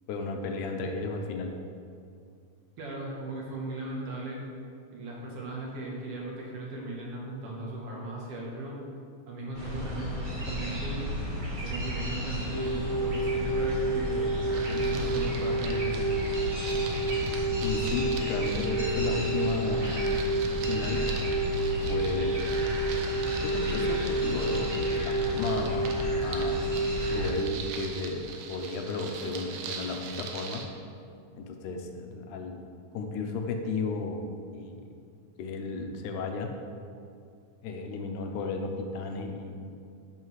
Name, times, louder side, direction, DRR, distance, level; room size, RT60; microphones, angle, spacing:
voice 1, 0.1-1.5 17.6-20.1 20.7-21.0 21.9-22.5 23.4-25.9 26.2-26.7 27.1-30.6 31.3-32.7 32.9-34.3 34.5-34.8 35.4-36.5 37.6-39.7, left 4 dB, 80° left, 4 dB, 2.1 m, -34 dB
voice 2, 2.8-4.4 4.9-8.8 9.3-11.0 11.6-16.1, right 2 dB, 60° right, -3 dB, 1.7 m, -37 dB
sound 1, 9.5-27.3, equal, 25° right, 1.3 m, -34 dB
sound 2, 12.5-27.5, right 2 dB, 45° right, 2.2 m, -30 dB
sound 3, 14.5-30.7, right 5 dB, 85° right, 2.3 m, -43 dB
11.0 x 5.6 x 3.1 m, 2.4 s
omnidirectional pair, 3.6 m